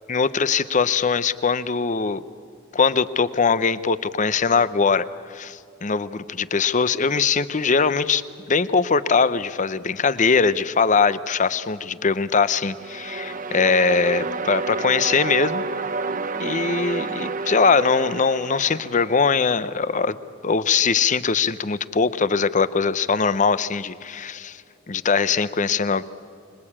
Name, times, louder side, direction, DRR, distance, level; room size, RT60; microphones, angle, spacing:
voice 1, 0.1-2.2 2.7-15.6 16.4-20.2 20.4-24.6 24.9-26.0, left 5 dB, 40° left, 15 dB, 0.7 m, -21 dB
sound 1, 12.6-19.7, right 4 dB, 45° right, 0.9 m, -30 dB
25.5 x 21.5 x 8.7 m, 2.5 s
head